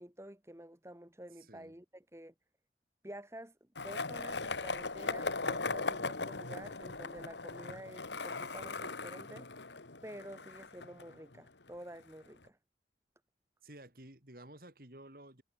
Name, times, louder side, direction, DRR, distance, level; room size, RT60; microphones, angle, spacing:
voice 1, 0.0-2.3 3.0-9.5 10.0-12.6, right 1 dB, 15° right, 1.8 m, -49 dB
voice 2, 1.4-1.8 13.6-15.4, right 1 dB, 55° right, 4.3 m, -53 dB
Skateboard, 3.8-11.7, left 3 dB, 85° left, 2.4 m, -39 dB
head